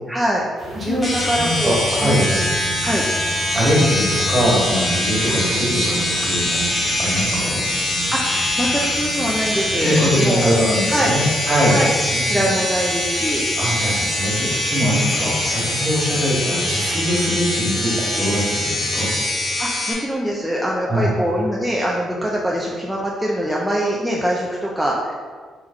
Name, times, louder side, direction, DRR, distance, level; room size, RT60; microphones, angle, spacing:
voice 1, 0.1-0.5 0.8-2.5 2.8-3.1 8.1-10.6 10.9-11.1 11.7-11.9 12.3-13.4 19.6-25.1, equal, 5° right, -4 dB, 0.5 m, -23 dB
sound 1, 0.6-16.4, right 1 dB, 85° right, 1.1 m, -38 dB
voice 2, 0.7-2.3 3.5-6.6 7.0-7.6 9.5-11.8 12.1-12.5 13.6-19.1 20.9-21.1, equal, 35° right, -4 dB, 1.4 m, -22 dB
sound 2, 1.0-19.9, left 1 dB, 25° left, 1.1 m, -23 dB
sound 3, 2.3-10.1, right 4 dB, 65° right, 0.5 m, -34 dB
3.5 x 3.0 x 3.6 m, 1.5 s
cardioid pair, 90°, 0 cm